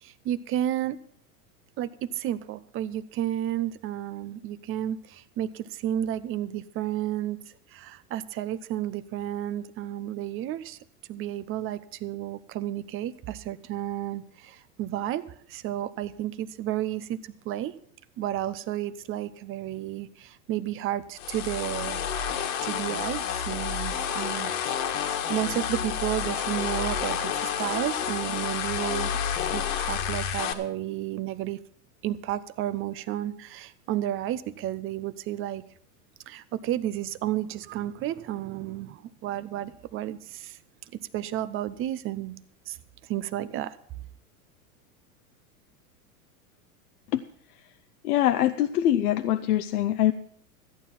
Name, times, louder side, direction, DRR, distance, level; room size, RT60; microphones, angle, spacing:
voice 1, 0.0-1.0 1.8-10.8 11.1-17.7 18.2-22.0 22.3-29.1 29.5-31.6 32.0-35.6 36.3-40.6 40.9-42.4 42.7-42.8 43.0-43.8, right 12 dB, 30° right, 16 dB, 0.7 m, -32 dB
sound 1, 21.2-30.5, left 8 dB, 55° left, 1.6 m, -30 dB
voice 2, 48.0-50.1, left 12 dB, 80° left, 9 dB, 0.8 m, -23 dB
14.0 x 9.3 x 5.8 m, 0.63 s
hypercardioid pair, 120°, 44 cm